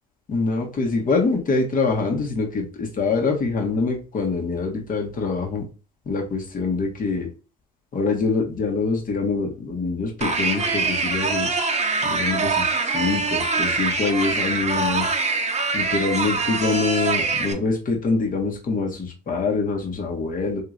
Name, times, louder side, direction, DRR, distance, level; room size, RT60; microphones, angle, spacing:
voice 1, 0.3-5.6 6.0-7.3 7.9-11.5 12.0-15.1 15.7-20.6, left 4 dB, 40° left, 1 dB, 1.5 m, -24 dB
sound 1, 10.2-17.5, right 3 dB, 30° right, 1.0 m, -24 dB
3.5 x 3.1 x 2.5 m, 0.34 s
hypercardioid pair, 65°, 21 cm